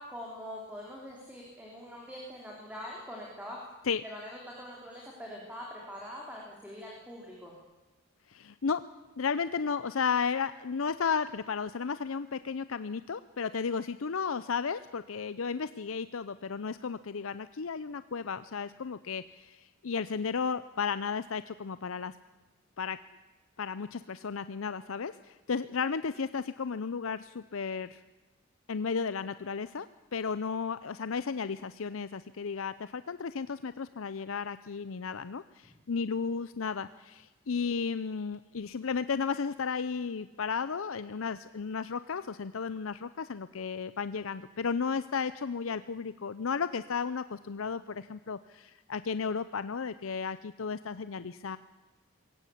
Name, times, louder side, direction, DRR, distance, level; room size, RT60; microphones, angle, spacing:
voice 1, 0.0-3.6 4.0-7.5, equal, 5° right, -2 dB, 3.5 m, -43 dB
voice 2, 8.3-8.8 9.2-22.1 22.8-23.0 23.6-28.0 28.7-29.9 30.1-51.6, left 5 dB, 80° left, 14 dB, 0.6 m, -34 dB
22.0 x 17.5 x 8.5 m, 1.2 s
head